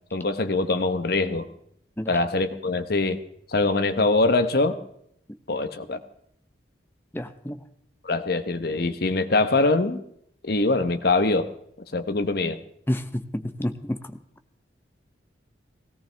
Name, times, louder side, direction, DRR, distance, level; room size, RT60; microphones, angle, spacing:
voice 1, 0.1-1.5 2.1-3.2 3.5-4.8 5.5-6.0 8.0-10.0 10.4-11.5 11.9-12.6, left 3 dB, 55° left, 10 dB, 1.0 m, -23 dB
voice 2, 7.1-7.6 12.9-14.0, left 1 dB, 10° left, 9 dB, 0.8 m, -29 dB
17.5 x 17.0 x 3.4 m, 0.70 s
head